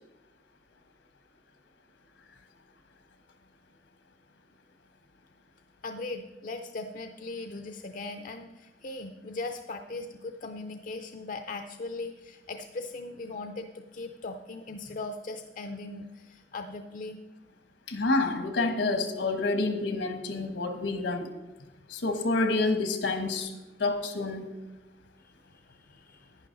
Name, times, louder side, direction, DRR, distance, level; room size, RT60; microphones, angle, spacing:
voice 1, 5.8-17.2 20.4-20.5 21.6-21.7 25.2-26.4, left 3 dB, 50° left, 7 dB, 0.5 m, -39 dB
voice 2, 17.9-21.3 21.9-23.5 23.8-24.5, left 3 dB, 80° left, 7 dB, 1.3 m, -28 dB
10.5 x 10.0 x 3.9 m, 1.1 s
head